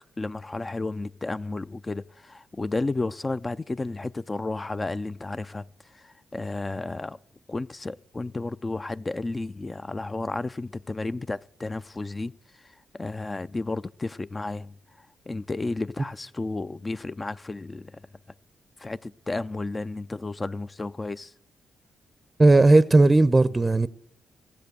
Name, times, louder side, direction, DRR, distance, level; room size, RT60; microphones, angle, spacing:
voice 1, 0.2-7.2 7.5-18.0 18.8-21.3, left 2 dB, 30° left, 0.4 m, -32 dB
voice 2, 22.4-23.9, right 2 dB, 30° right, 0.5 m, -16 dB
15.5 x 7.5 x 6.7 m
hypercardioid pair, 45°, 0 cm